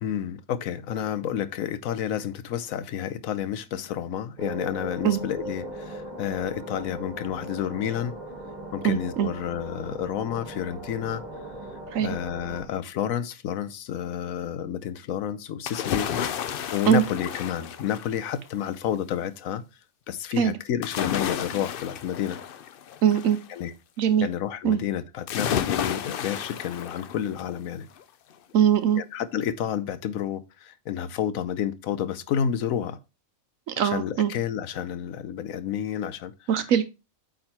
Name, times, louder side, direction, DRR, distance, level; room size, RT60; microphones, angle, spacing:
voice 1, 0.0-8.1 8.7-11.2 12.0-16.1 16.7-19.6 20.1-22.4 23.5-23.7 24.2-27.9 29.0-33.0 33.8-36.3, left 9 dB, 80° left, 1.1 m, -30 dB
sound 1, 4.4-12.7, right 2 dB, 30° right, 1.6 m, -39 dB
voice 2, 8.8-9.3 11.9-12.2 16.9-17.0 20.4-20.6 23.0-23.4 24.0-24.3 24.6-24.8 28.5-29.0 33.7-34.3 36.5-36.8, right 9 dB, 75° right, 1.1 m, -21 dB
sound 2, 15.7-18.5 20.8-23.4 25.3-27.6 28.0-28.1, left 9 dB, 60° left, 0.6 m, -31 dB
8.8 x 3.9 x 4.2 m
omnidirectional pair, 1.4 m